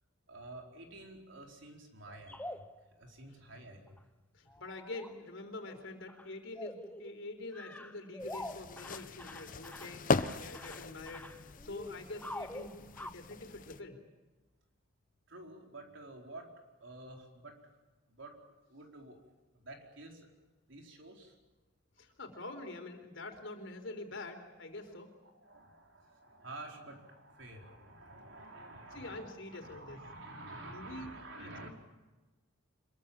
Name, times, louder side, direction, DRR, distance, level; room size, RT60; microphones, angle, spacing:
voice 1, 0.3-4.1 15.3-16.5 16.8-17.6 18.1-18.3 18.7-19.2 19.5-20.3 20.7-21.3 24.9-31.7, right 2 dB, 65° right, 2 dB, 4.7 m, -50 dB
sound 1, 2.1-2.9 3.9-4.0 4.5-5.1 5.7-5.8 6.1-6.3 6.6-7.2 7.5-13.1, left 1 dB, 10° left, 0.8 m, -46 dB
voice 2, 4.3-11.3 11.6-14.0 22.0-25.1 28.9-30.0 30.7-31.7, left 2 dB, 65° left, 5 dB, 4.1 m, -46 dB
sound 2, 8.2-13.8, left 4 dB, 45° left, 0.8 m, -38 dB
26.5 x 22.5 x 7.4 m, 1.2 s
head